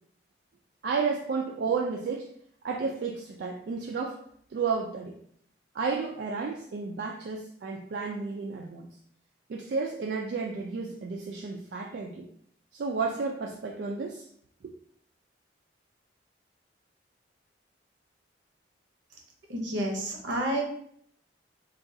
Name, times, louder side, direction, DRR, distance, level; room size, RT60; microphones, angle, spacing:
voice 1, 0.8-2.3 2.6-4.2 4.5-5.2 5.7-8.9 9.5-12.3 12.7-14.3 14.6-14.7, right 4 dB, 60° right, 0 dB, 0.3 m, -32 dB
voice 2, 19.5-20.6, right 1 dB, 75° right, 1 dB, 0.7 m, -30 dB
3.6 x 2.3 x 2.6 m, 0.66 s
head